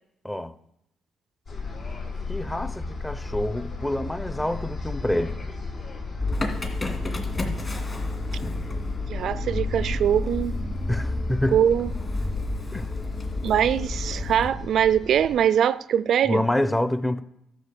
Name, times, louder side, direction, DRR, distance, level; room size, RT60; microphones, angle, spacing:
sound 1, 1.5-15.4, left 3 dB, 70° left, 4.9 m, -35 dB
voice 1, 2.3-5.4 10.9-11.6 12.7-12.9 16.3-17.2, left 1 dB, 10° left, 0.6 m, -27 dB
Motor vehicle (road) / Engine starting, 6.2-14.5, left 2 dB, 30° left, 2.2 m, -30 dB
voice 2, 9.1-10.6 11.5-11.9 13.4-16.4, right 9 dB, 65° right, 0.3 m, -22 dB
12.5 x 5.3 x 6.8 m
cardioid pair, 90°, 0 cm